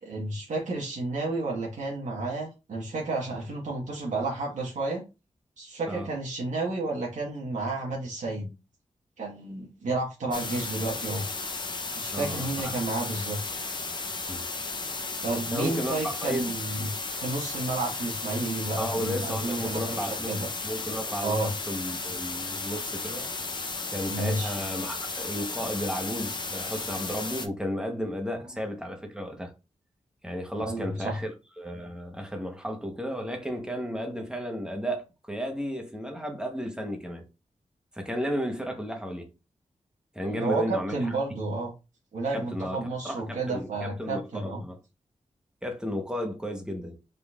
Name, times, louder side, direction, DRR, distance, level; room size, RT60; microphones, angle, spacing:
voice 1, 0.0-5.0 5.6-8.5 9.2-11.3 12.0-13.4 15.2-20.5 21.2-21.5 24.1-24.6 30.6-31.2 40.2-41.7 42.1-44.6, right 2 dB, 75° right, 1.3 m, -31 dB
sound 1, 10.3-27.5, left 3 dB, 35° left, 0.7 m, -34 dB
voice 2, 12.1-12.8 14.3-14.5 15.5-16.5 18.8-23.3 23.9-29.5 30.2-31.3 31.6-37.3 37.9-39.3 40.1-41.1 42.3-44.8 45.6-46.9, equal, 5° right, 0.9 m, -33 dB
5.2 x 3.8 x 2.4 m
wide cardioid pair, 175°, 13 cm